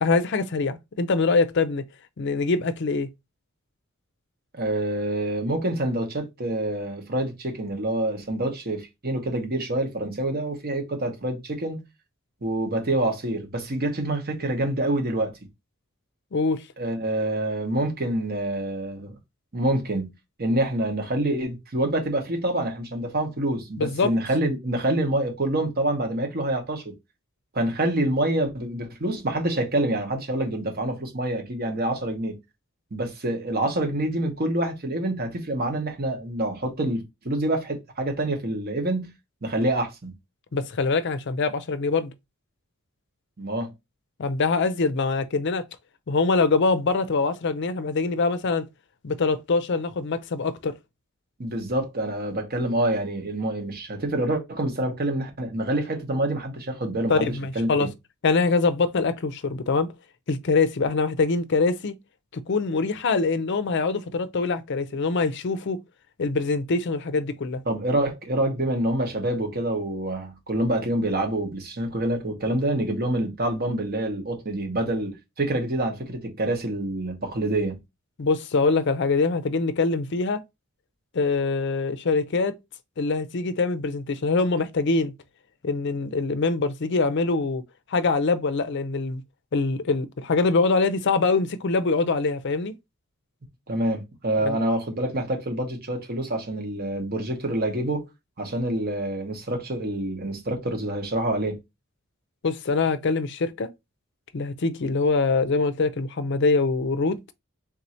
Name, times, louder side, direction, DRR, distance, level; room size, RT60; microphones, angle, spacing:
voice 1, 0.0-1.8 2.2-3.1 16.3-16.6 23.8-24.1 40.5-42.1 44.2-45.6 46.1-48.6 49.0-50.8 57.1-57.9 58.2-59.9 60.3-61.9 62.3-65.8 66.2-67.6 78.2-80.4 81.1-82.5 83.0-85.1 85.6-87.6 87.9-89.2 89.5-92.7 94.4-94.6 102.4-103.7 104.3-107.2, left 4 dB, 55° left, 0.5 m, -24 dB
voice 2, 4.5-11.8 12.4-15.3 16.8-19.1 19.5-20.1 20.4-26.9 27.5-32.4 32.9-39.1 39.4-40.1 43.4-43.7 51.4-57.9 67.7-77.8 93.7-98.1 98.4-101.6, right 1 dB, 45° right, 1.1 m, -26 dB
3.7 x 2.7 x 4.2 m
head